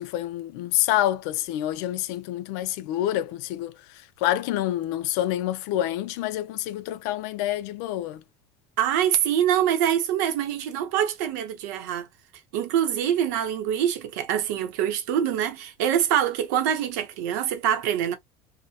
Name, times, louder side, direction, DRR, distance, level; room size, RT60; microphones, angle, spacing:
voice 1, 0.0-3.8 4.2-8.2, left 13 dB, 70° left, 0.4 m, -27 dB
voice 2, 8.8-12.1 12.5-18.1, right 10 dB, 80° right, 0.7 m, -24 dB
2.8 x 2.0 x 2.2 m
cardioid pair, 155°, 9 cm